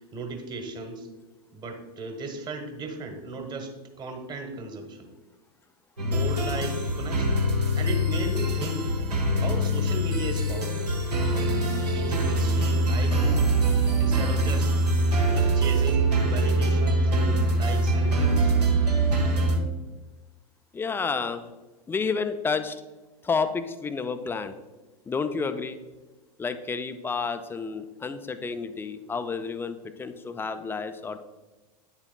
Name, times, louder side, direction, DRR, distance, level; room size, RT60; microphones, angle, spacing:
voice 1, 0.1-1.1 1.5-5.1 6.0-7.5 7.8-8.9 9.4-11.0 11.3-13.5 14.0-14.7 15.2-18.5, right 3 dB, 20° right, 5 dB, 1.2 m, -36 dB
sound 1, 6.0-19.6, right 1 dB, 75° right, 1.4 m, -23 dB
voice 2, 20.7-21.5 21.9-22.8 23.2-24.6 25.1-25.8 26.4-31.2, left 5 dB, 10° left, 9 dB, 0.4 m, -30 dB
9.6 x 7.3 x 2.2 m, 1.2 s
figure-of-eight pair, 90°, 21 cm